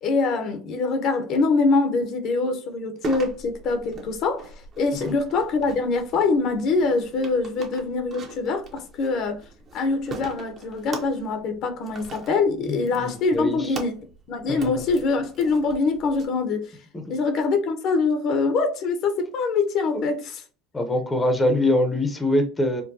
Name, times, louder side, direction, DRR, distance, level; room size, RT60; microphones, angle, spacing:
voice 1, 0.0-4.5 4.8-9.4 9.7-13.9 14.3-16.7 17.1-20.4, left 4 dB, 50° left, 0.7 m, -24 dB
sound 1, 3.0-16.2, right 4 dB, 35° right, 0.9 m, -41 dB
voice 2, 12.7-13.7 14.5-14.8 16.9-17.0 19.9-20.0 20.7-22.8, left 1 dB, 10° left, 0.7 m, -24 dB
4.5 x 2.2 x 2.7 m
cardioid pair, 130°, 0 cm